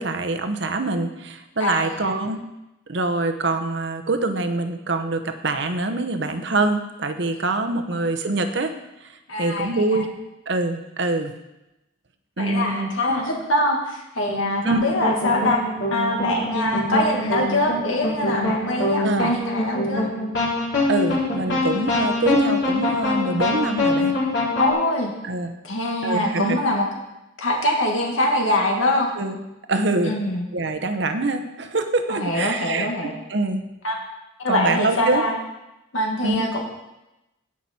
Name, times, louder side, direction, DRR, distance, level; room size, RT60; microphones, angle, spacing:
voice 1, 0.0-2.4 2.9-8.7 9.4-10.1 10.5-11.3 12.4-12.9 14.6-14.9 19.0-19.3 20.9-24.1 25.2-25.5 26.0-26.6 29.2-29.4 29.7-30.1 30.5-32.9 33.3-33.6 34.5-35.2 36.2-36.5, right 2 dB, 60° right, 7 dB, 0.9 m, -24 dB
voice 2, 1.6-2.1 9.3-10.1 12.4-15.6 15.9-20.1 24.6-25.1 25.6-26.9 27.4-29.1 30.0-30.5 32.1-33.1 33.8-34.0 34.4-35.4 35.9-36.6, left 1 dB, 80° left, 0 dB, 1.9 m, -23 dB
sound 1, 13.1-13.4 14.3-24.7, left 2 dB, 60° left, 3.9 m, -24 dB
17.0 x 6.0 x 4.3 m, 0.95 s
head